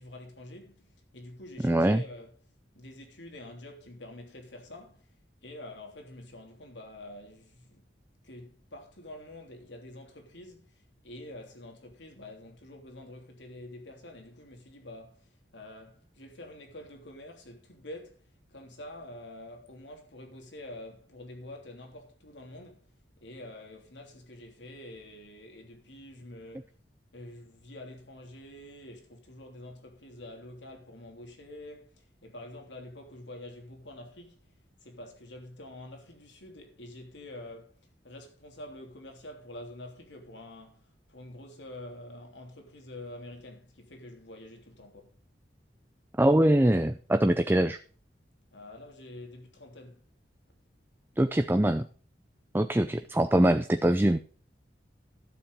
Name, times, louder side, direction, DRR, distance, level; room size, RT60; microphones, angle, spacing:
voice 1, 0.0-2.3 2.7-5.2 5.4-7.9 8.2-26.7 27.1-34.5 34.8-45.2 48.5-50.0, left 1 dB, 90° left, 3.3 m, -47 dB
voice 2, 1.6-2.0 46.2-47.8 51.2-51.9 52.5-54.2, right 1 dB, 10° right, 0.5 m, -23 dB
13.0 x 7.4 x 5.3 m
head